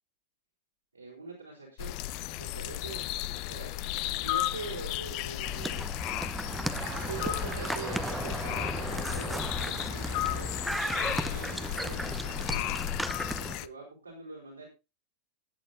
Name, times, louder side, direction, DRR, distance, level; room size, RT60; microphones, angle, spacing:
voice 1, 0.9-2.0 2.4-3.0 3.3-5.8 7.0-12.8 13.3-14.7, right 4 dB, 80° right, -1 dB, 4.4 m, -44 dB
sound 1, 1.8-13.7, left 16 dB, 45° left, 0.6 m, -34 dB
sound 2, 5.4-13.6, equal, ahead, 0.8 m, -35 dB
Cheering / Applause, 6.2-12.5, right 13 dB, 50° right, 1.2 m, -46 dB
19.5 x 8.7 x 2.6 m, 0.27 s
figure-of-eight pair, 90°, 0 cm